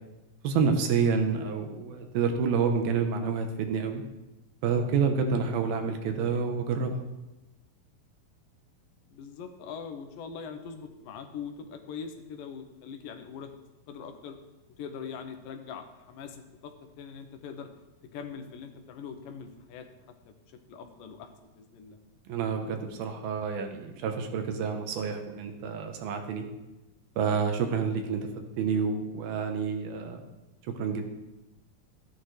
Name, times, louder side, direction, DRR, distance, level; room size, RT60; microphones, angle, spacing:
voice 1, 0.4-4.0 4.6-7.0 22.3-26.5 27.2-28.3 28.6-30.3 30.8-31.1, right 5 dB, 80° right, 5 dB, 2.9 m, -28 dB
voice 2, 9.1-13.5 13.9-14.4 14.8-17.7 18.1-19.9 20.3-20.4 20.7-22.0, left 6 dB, 75° left, 5 dB, 2.5 m, -42 dB
13.5 x 10.0 x 3.3 m, 1.0 s
omnidirectional pair, 4.3 m